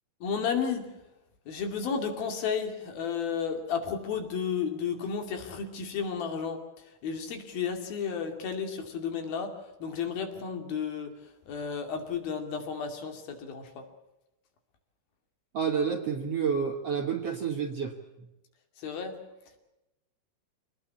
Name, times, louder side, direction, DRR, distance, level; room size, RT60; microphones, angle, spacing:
voice 1, 0.2-0.9 1.5-6.6 7.0-9.5 9.8-13.9 18.8-19.2, left 6 dB, 70° left, 5 dB, 4.4 m, -32 dB
voice 2, 15.5-17.9, right 6 dB, 55° right, 4 dB, 1.9 m, -29 dB
25.5 x 19.5 x 7.1 m, 0.95 s
omnidirectional pair, 4.4 m